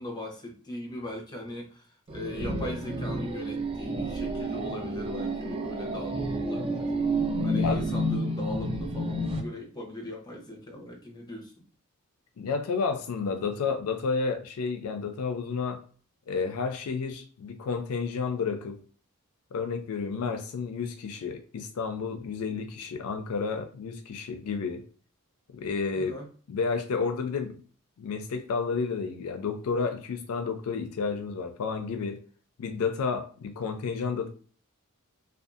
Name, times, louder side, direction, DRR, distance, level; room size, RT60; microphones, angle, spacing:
voice 1, 0.0-1.9 2.1-6.9 7.4-11.5 25.9-26.3, left 1 dB, 20° left, 0.7 m, -39 dB
sound 1, 2.1-9.4, right 1 dB, 25° right, 0.4 m, -30 dB
voice 2, 7.5-7.9 12.4-15.8 16.3-18.8 19.5-24.8 25.5-26.1 26.5-27.6 28.0-32.2 32.6-34.3, left 5 dB, 75° left, 0.4 m, -31 dB
2.6 x 2.3 x 2.4 m
head